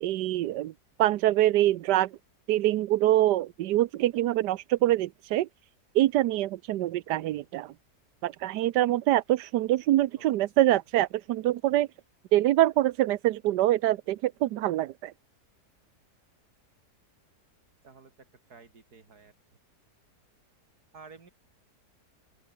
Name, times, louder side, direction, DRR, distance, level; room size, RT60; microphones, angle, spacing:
voice 1, 0.0-0.7 1.0-2.1 2.5-5.5 5.9-7.7 8.2-11.9 12.3-15.1, right 14 dB, 90° right, 1.3 m, -25 dB
voice 2, 17.8-19.3 20.9-21.3, right 4 dB, 65° right, 3.3 m, -52 dB
open air
omnidirectional pair, 1.8 m